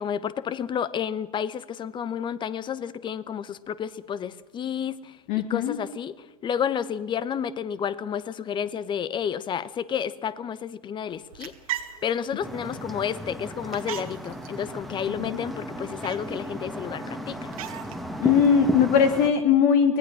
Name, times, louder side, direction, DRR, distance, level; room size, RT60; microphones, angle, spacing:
voice 1, 0.0-6.1 6.4-11.5 12.0-17.5, left 8 dB, 25° left, 17 dB, 1.0 m, -31 dB
voice 2, 5.3-5.8 15.2-15.4 18.2-20.0, left 7 dB, 45° left, 8 dB, 1.5 m, -20 dB
sound 1, 11.1-18.9, right 12 dB, 65° right, 2.0 m, -41 dB
sound 2, 12.4-19.3, equal, ahead, 1.7 m, -34 dB
24.0 x 18.5 x 6.3 m, 1.1 s
figure-of-eight pair, 95°, 20 cm